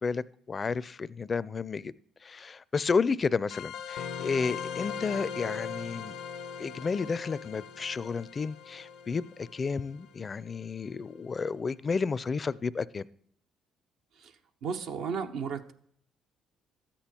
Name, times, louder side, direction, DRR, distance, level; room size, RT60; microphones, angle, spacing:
voice 1, 0.0-1.9 2.2-6.1 6.6-13.1, left 5 dB, 35° left, 19 dB, 0.5 m, -31 dB
sound 1, 3.5-10.6, left 7 dB, 85° left, 0.8 m, -40 dB
voice 2, 14.6-15.7, right 6 dB, 75° right, 4 dB, 0.9 m, -34 dB
13.0 x 8.8 x 4.4 m, 0.66 s
supercardioid pair, 75°, 0 cm